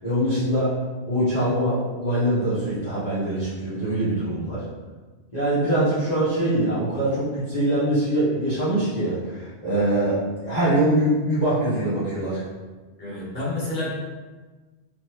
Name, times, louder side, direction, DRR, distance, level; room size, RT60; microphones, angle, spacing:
voice 1, 0.0-0.7 1.1-4.6 5.3-12.4, right 1 dB, 35° left, -15 dB, 1.7 m, -23 dB
voice 2, 13.0-13.9, left 2 dB, 55° left, -6 dB, 1.5 m, -29 dB
4.2 x 3.2 x 3.0 m, 1.3 s
omnidirectional pair, 1.2 m